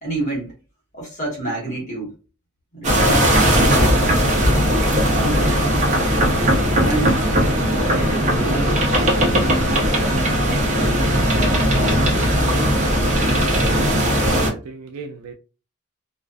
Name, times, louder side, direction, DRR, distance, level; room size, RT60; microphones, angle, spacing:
voice 1, 0.0-0.5 0.9-2.1 2.7-4.1 5.0-5.8 6.8-7.2 7.7-9.6 10.7-10.9 11.6-13.4, right 2 dB, 35° left, -3 dB, 1.0 m, -29 dB
sound 1, 2.8-14.5, equal, 35° right, 0.7 m, -18 dB
voice 2, 14.1-15.3, right 4 dB, 90° right, 5 dB, 0.3 m, -35 dB
2.3 x 2.3 x 2.3 m, 0.33 s
head